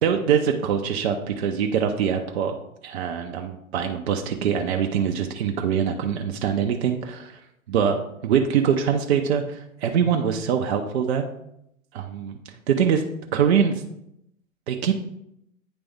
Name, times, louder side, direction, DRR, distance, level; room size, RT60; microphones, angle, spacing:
voice 1, 0.0-2.5 2.8-7.4 7.7-8.0 8.2-11.3 11.9-12.4 12.7-13.0 13.3-13.8 14.7-15.0, right 7 dB, 50° right, 4 dB, 0.6 m, -23 dB
9.0 x 3.4 x 3.5 m, 0.80 s
figure-of-eight pair, 110°, 41 cm